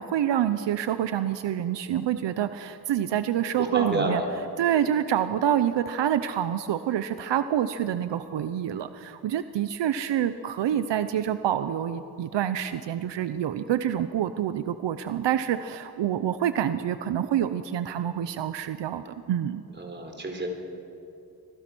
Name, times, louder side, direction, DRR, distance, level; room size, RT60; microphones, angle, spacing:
voice 1, 0.0-4.2 4.6-19.6, right 10 dB, 75° right, 11 dB, 0.8 m, -27 dB
voice 2, 3.6-4.2 19.8-20.5, right 2 dB, 25° right, 2 dB, 4.0 m, -29 dB
26.0 x 20.0 x 6.2 m, 2.6 s
cardioid pair, 120°, 42 cm